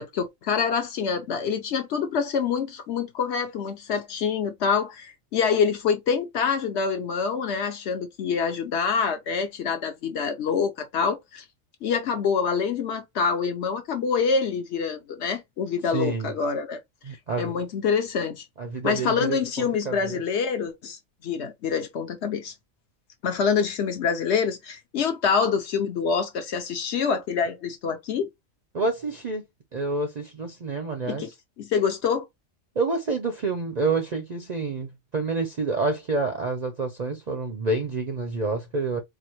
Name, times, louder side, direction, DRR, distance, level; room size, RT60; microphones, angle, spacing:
voice 1, 0.0-11.4 11.8-16.8 17.4-18.4 18.8-22.5 23.2-28.3 31.1-31.3 31.6-32.3, left 6 dB, 60° left, 1.0 m, -26 dB
voice 2, 15.9-16.3 17.1-17.5 18.6-20.2 28.7-29.4 29.7-31.2 32.8-39.0, right 3 dB, 55° right, 0.5 m, -28 dB
4.1 x 2.5 x 2.9 m
omnidirectional pair, 1.4 m